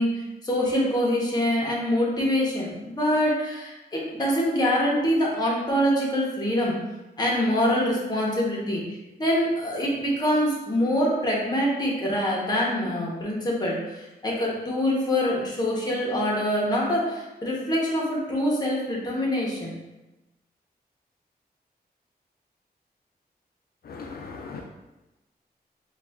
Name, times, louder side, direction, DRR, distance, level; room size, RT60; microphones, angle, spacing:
voice 1, 0.0-6.8 7.2-8.8 9.2-19.7, equal, 25° left, -4 dB, 1.0 m, -25 dB
voice 2, 23.9-24.6, left 4 dB, 70° left, 0 dB, 0.4 m, -38 dB
3.8 x 2.4 x 3.5 m, 1.0 s
wide cardioid pair, 140°, 16 cm